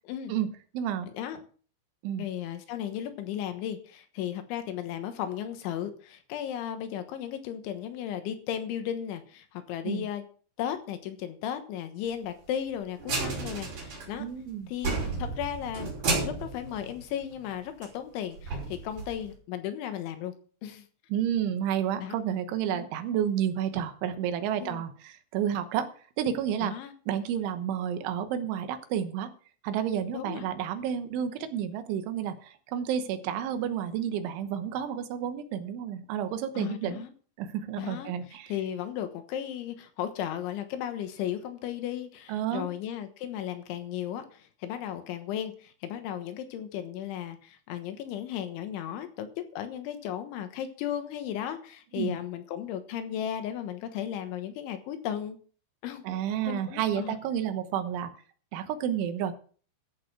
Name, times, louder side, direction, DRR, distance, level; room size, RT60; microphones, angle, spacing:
voice 1, 0.7-1.1 2.0-2.3 9.8-10.1 14.2-14.7 21.1-25.9 26.2-26.8 27.1-29.3 29.6-37.1 37.4-38.5 42.3-42.7 52.0-52.2 56.1-58.1 58.5-59.3, right 9 dB, 85° right, 9 dB, 3.5 m, -30 dB
voice 2, 2.2-10.3 10.6-14.3 14.7-15.9 16.2-20.3 20.6-20.9 22.0-22.2 22.7-22.8 24.6-24.8 26.6-26.9 30.1-30.5 36.6-37.1 37.8-38.1 38.5-55.4 55.8-56.0 56.5-57.2, left 10 dB, 80° left, 8 dB, 3.6 m, -35 dB
sound 1, 13.0-14.4 14.7-17.5 17.8-17.9 18.4-19.3, right 3 dB, 40° right, 5.8 m, -32 dB
14.0 x 6.7 x 6.2 m, 0.42 s
omnidirectional pair, 5.5 m